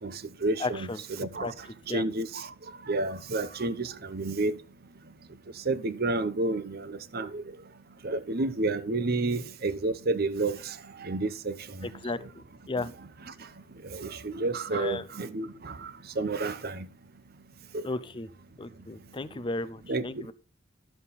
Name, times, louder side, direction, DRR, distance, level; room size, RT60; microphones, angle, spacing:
voice 1, 0.0-0.9 1.2-4.6 5.1-12.1 12.8-12.9 13.3-16.9 17.7-17.9 19.9-20.3, right 2 dB, 50° right, 0.8 m, -31 dB
voice 2, 0.6-1.5 1.9-2.0 11.8-12.2 12.7-12.9 14.7-15.1 17.8-18.3 18.6-20.3, left 3 dB, 25° left, 0.5 m, -34 dB
11.5 x 7.3 x 4.1 m
head